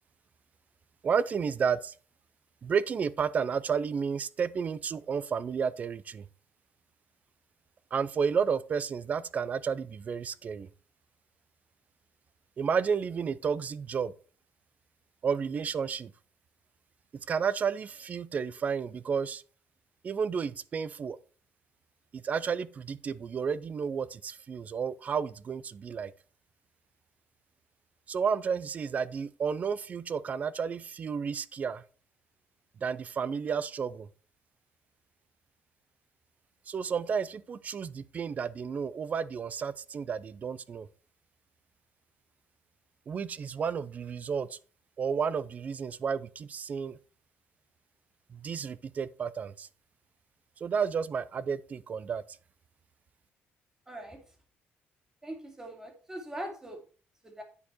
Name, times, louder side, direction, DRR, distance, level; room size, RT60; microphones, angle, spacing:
voice 1, 1.0-1.9 2.6-6.3 7.9-10.7 12.6-14.1 15.2-16.1 17.3-19.4 20.0-21.2 22.1-26.1 28.1-31.8 32.8-34.1 36.7-40.9 43.1-44.6 45.0-47.0 48.3-49.7 50.6-52.2, right 6 dB, 35° right, 0.5 m, -31 dB
voice 2, 53.9-54.2 55.2-56.8 57.2-57.4, right 1 dB, 10° right, 2.2 m, -41 dB
9.9 x 4.4 x 4.4 m
cardioid pair, 135°, 4 cm